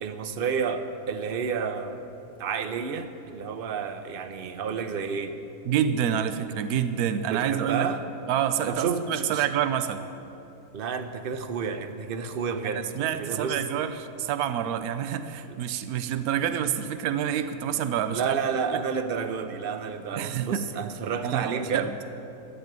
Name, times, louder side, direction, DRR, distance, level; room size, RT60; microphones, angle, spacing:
voice 1, 0.0-2.1 2.4-5.4 7.3-8.0 8.7-9.5 10.7-12.8 13.1-13.6 18.1-21.9, right 6 dB, 45° right, 8 dB, 0.8 m, -30 dB
voice 2, 5.7-7.9 8.3-10.1 12.6-18.4 20.2-20.7 21.2-22.0, right 9 dB, 80° right, 10 dB, 1.1 m, -27 dB
13.5 x 7.6 x 9.4 m, 2.8 s
omnidirectional pair, 1.6 m